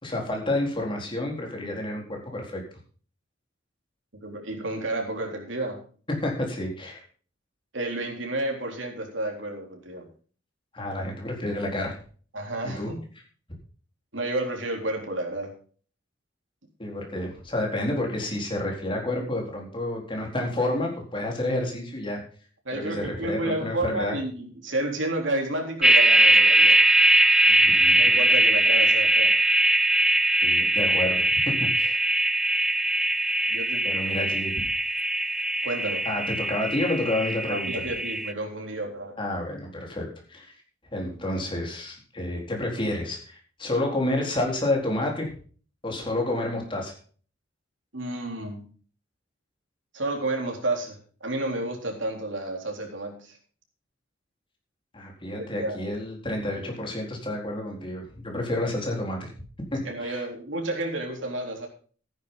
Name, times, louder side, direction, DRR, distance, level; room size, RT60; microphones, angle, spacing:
voice 1, 0.0-2.6 6.2-7.0 10.7-12.0 12.6-12.9 16.8-22.2 22.7-24.2 27.5-28.0 30.4-31.3 31.6-32.0 33.8-34.5 36.0-37.7 39.2-40.5 40.9-45.3 45.8-46.9 54.9-59.3 59.7-60.2, left 1 dB, 25° left, 0 dB, 4.2 m, -29 dB
voice 2, 4.2-5.8 7.7-10.0 12.3-13.0 14.1-15.5 22.7-26.8 28.0-29.3 33.5-33.9 35.6-36.0 37.5-39.2 47.9-48.6 49.9-53.4 55.3-55.8 59.8-61.7, right 2 dB, 90° right, 2 dB, 3.7 m, -31 dB
sound 1, 25.8-38.3, right 1 dB, 5° right, 0.5 m, -21 dB
14.0 x 10.5 x 4.0 m, 0.42 s
head